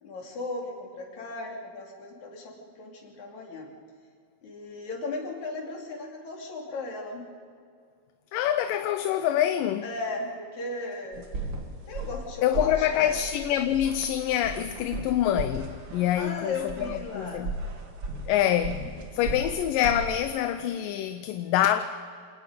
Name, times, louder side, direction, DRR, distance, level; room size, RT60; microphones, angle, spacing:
voice 1, 0.0-3.7 4.4-7.2 9.8-11.2 11.9-13.2 16.2-17.5 18.8-19.0, left 3 dB, 55° left, 4.2 m, -36 dB
voice 2, 8.3-9.9 12.4-17.5 18.3-18.9 19.1-21.8, left 11 dB, 75° left, 2.3 m, -26 dB
sound 1, 11.1-20.2, right 2 dB, 40° right, 2.2 m, -37 dB
27.5 x 19.0 x 5.2 m
omnidirectional pair, 4.1 m